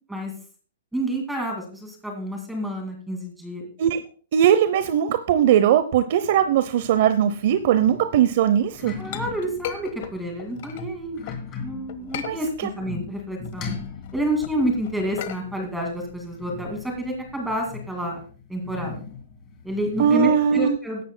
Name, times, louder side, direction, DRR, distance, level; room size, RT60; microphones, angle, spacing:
voice 1, 0.9-3.7 9.0-11.2 11.6-13.8 14.1-18.2 18.5-19.0 19.6-21.0, right 1 dB, 5° right, 2 dB, 2.3 m, -29 dB
voice 2, 4.3-8.9 12.3-12.7 20.0-20.8, right 9 dB, 50° right, 11 dB, 0.7 m, -20 dB
sound 1, 6.3-20.5, left 5 dB, 20° left, 2.7 m, -40 dB
Chink clink, 8.6-11.5 11.9-12.9 13.3-17.4, left 10 dB, 50° left, 1.3 m, -38 dB
16.5 x 12.0 x 2.2 m, 0.41 s
hypercardioid pair, 155°, 0 cm